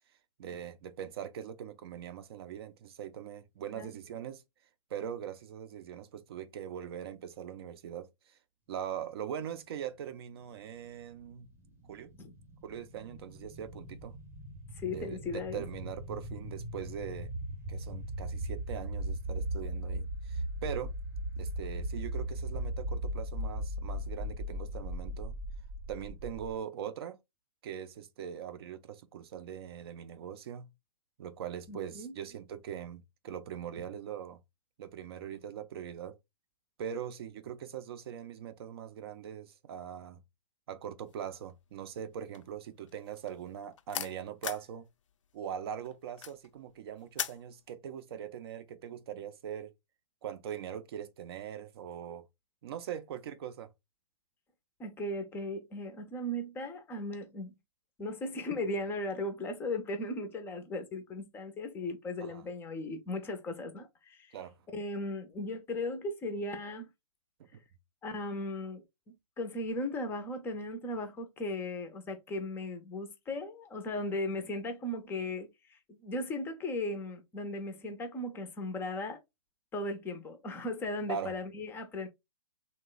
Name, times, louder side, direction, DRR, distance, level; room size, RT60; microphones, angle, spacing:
voice 1, 0.4-4.4 4.9-8.4 8.7-11.5 11.9-12.1 12.6-14.2 14.8-17.3 17.7-20.9 21.4-25.4 25.9-27.2 27.6-30.7 31.2-34.4 34.8-36.2 36.8-40.2 40.7-44.9 45.3-49.7 50.2-52.2 52.6-53.7 62.2-62.4 64.3-64.5 67.4-67.6 81.1-81.3, right 9 dB, 50° right, 0.5 m, -41 dB
sound 1, 10.7-26.6, right 1 dB, 15° right, 0.8 m, -38 dB
voice 2, 14.7-15.6 31.7-32.1 54.8-57.5 58.0-64.4 64.7-66.9 68.0-68.8 69.4-79.2 79.7-82.1, left 2 dB, 15° left, 0.5 m, -37 dB
sound 2, 41.1-41.5 41.8-44.7 45.1-47.5, left 9 dB, 70° left, 0.5 m, -40 dB
3.0 x 2.2 x 3.8 m
hypercardioid pair, 135°, 17 cm